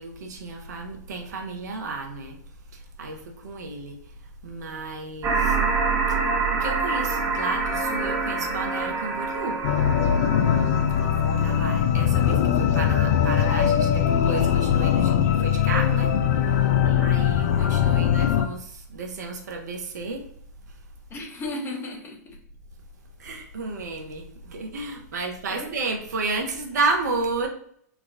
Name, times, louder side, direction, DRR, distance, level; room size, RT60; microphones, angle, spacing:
voice 1, 0.0-2.4 2.7-4.0 4.4-5.6 6.1-6.2 6.6-9.6 11.0-16.1 16.4-20.3 23.2-27.5, right 3 dB, 70° right, 3 dB, 0.8 m, -32 dB
sound 1, 5.2-11.7, right 4 dB, 25° right, 0.9 m, -26 dB
sound 2, 9.6-18.5, left 9 dB, 60° left, 0.4 m, -21 dB
voice 2, 21.1-22.4 25.1-25.8, left 2 dB, 25° left, 1 dB, 0.9 m, -36 dB
3.6 x 2.3 x 3.2 m, 0.65 s
figure-of-eight pair, 100°, 10 cm